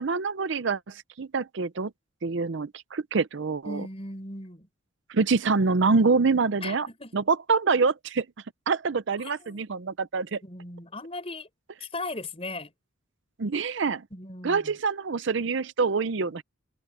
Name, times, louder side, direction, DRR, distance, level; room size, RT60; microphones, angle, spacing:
voice 1, 0.0-1.9 2.2-3.8 5.1-6.9 7.1-8.3 8.7-10.4 13.4-14.0 14.4-16.4, right 4 dB, 55° right, 0.6 m, -25 dB
voice 2, 3.7-4.7 6.6-7.1 9.4-9.6 10.4-11.5 11.8-12.7 14.1-14.7, left 2 dB, 30° left, 5.6 m, -37 dB
head